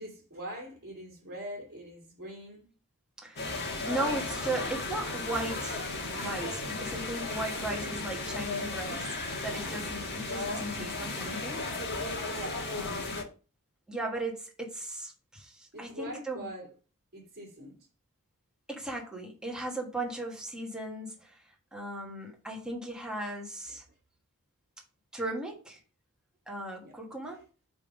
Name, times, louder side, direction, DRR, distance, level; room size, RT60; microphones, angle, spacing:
voice 1, 0.0-2.7 12.3-12.8 15.7-16.7 17.1-17.9 23.7-23.8 26.8-26.9 27.2-27.4, equal, 50° right, 2.0 m, -43 dB
voice 2, 3.2-3.6 3.8-9.1 9.4-11.6 12.7-13.2 13.9-16.5 18.7-23.8 25.1-25.8 26.5-27.4, right 2 dB, 5° right, 1.4 m, -37 dB
sound 1, 3.4-13.2, left 2 dB, 50° left, 1.4 m, -35 dB
5.4 x 3.6 x 5.1 m
head